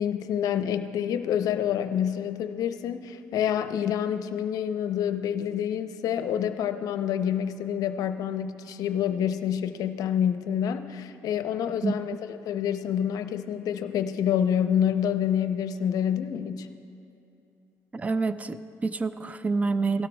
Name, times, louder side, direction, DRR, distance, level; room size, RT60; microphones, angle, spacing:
voice 1, 0.0-16.7, left 9 dB, 70° left, 9 dB, 0.6 m, -27 dB
voice 2, 17.9-20.1, right 4 dB, 25° right, 13 dB, 0.4 m, -27 dB
17.0 x 12.5 x 2.3 m, 2.9 s
cardioid pair, 85°, 6 cm